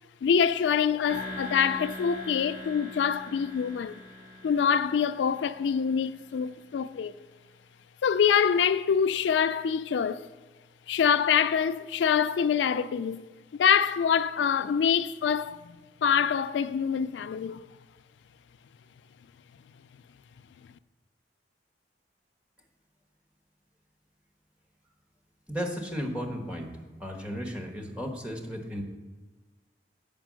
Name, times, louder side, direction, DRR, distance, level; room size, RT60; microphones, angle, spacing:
voice 1, 0.2-4.0 4.4-7.1 8.0-10.3 10.9-13.3 13.5-15.6 16.0-17.6, left 7 dB, 85° left, 0.3 m, -25 dB
sound 1, 1.1-6.0, left 1 dB, 35° right, 1.7 m, -42 dB
voice 2, 25.5-26.7 27.0-28.8, equal, 5° right, 1.2 m, -34 dB
9.1 x 5.2 x 6.2 m
head